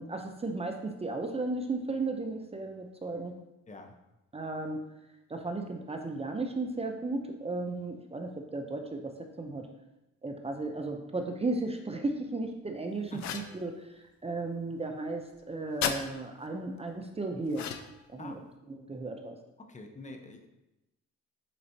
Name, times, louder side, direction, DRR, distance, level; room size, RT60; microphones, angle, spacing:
voice 1, 0.0-3.3 4.3-4.8 5.3-9.7 10.2-13.8 14.2-17.7 18.1-18.4 18.8-19.4, right 2 dB, 20° right, 4 dB, 0.6 m, -35 dB
sound 1, 13.2-13.6 15.8-16.0 17.5-18.0, left 8 dB, 70° left, 0.6 m, -33 dB
voice 2, 19.6-20.5, left 2 dB, 25° left, 4 dB, 0.9 m, -46 dB
8.5 x 4.0 x 2.8 m, 0.93 s
cardioid pair, 90°, 30 cm